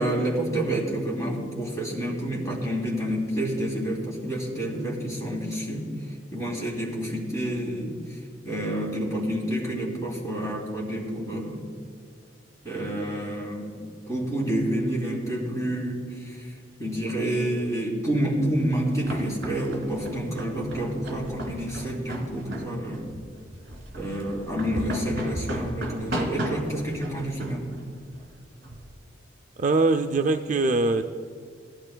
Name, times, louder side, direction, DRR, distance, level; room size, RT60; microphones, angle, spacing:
voice 1, 0.0-8.2 8.4-11.6 12.6-13.8 14.1-16.5 16.8-23.0 23.9-27.7, right 1 dB, 15° left, -4 dB, 2.8 m, -29 dB
sound 1, 18.5-28.9, right 1 dB, 55° right, 1.9 m, -36 dB
voice 2, 29.6-31.0, right 3 dB, 40° right, 6 dB, 0.3 m, -22 dB
17.5 x 12.5 x 2.2 m, 2.1 s
head